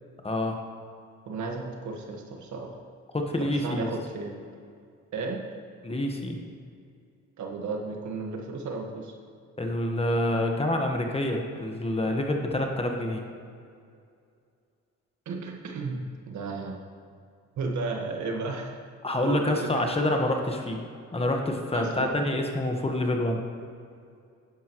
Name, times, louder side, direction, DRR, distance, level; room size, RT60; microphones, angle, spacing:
voice 1, 0.2-0.5 3.1-3.9 5.8-6.4 9.6-13.2 19.0-20.8 21.1-23.4, left 1 dB, 20° left, 2 dB, 1.4 m, -27 dB
voice 2, 1.3-2.8 3.4-4.4 5.1-5.4 7.4-9.1 15.2-16.8 17.6-18.8 19.2-19.9 21.7-22.1, right 3 dB, 70° right, 1 dB, 1.6 m, -34 dB
11.0 x 11.0 x 3.1 m, 2.3 s
cardioid pair, 90°, 30 cm